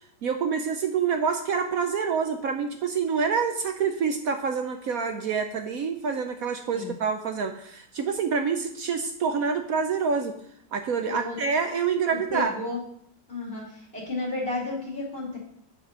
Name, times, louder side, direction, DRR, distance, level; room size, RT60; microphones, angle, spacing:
voice 1, 0.2-10.3 10.7-12.5, right 6 dB, 65° right, 6 dB, 0.9 m, -27 dB
voice 2, 12.3-12.8 13.3-15.4, left 2 dB, 30° left, -4 dB, 2.6 m, -32 dB
9.2 x 5.0 x 5.6 m, 0.68 s
omnidirectional pair, 2.1 m